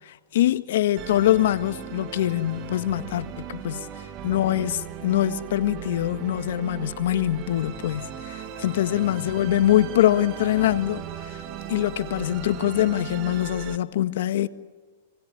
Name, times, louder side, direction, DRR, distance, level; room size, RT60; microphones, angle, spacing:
voice 1, 0.1-3.9 4.2-11.4 11.7-14.5, left 13 dB, 70° left, 1.5 m, -24 dB
Musical instrument, 1.0-13.8, right 9 dB, 40° right, 1.9 m, -38 dB
28.5 x 19.5 x 9.8 m
hypercardioid pair, 130°, 0 cm